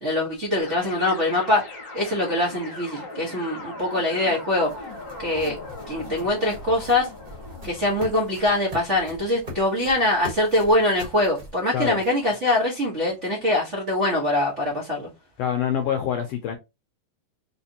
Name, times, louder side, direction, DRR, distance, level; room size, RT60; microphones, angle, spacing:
voice 1, 0.0-4.7 5.2-5.6 5.9-7.1 7.6-15.1, left 1 dB, 90° right, 0.6 m, -23 dB
sound 1, 0.6-8.7, left 2 dB, 55° left, 1.4 m, -39 dB
sound 2, 3.9-12.4, left 1 dB, 30° right, 0.9 m, -42 dB
voice 2, 15.4-16.6, left 9 dB, 80° left, 1.4 m, -25 dB
4.3 x 3.2 x 2.8 m
omnidirectional pair, 3.4 m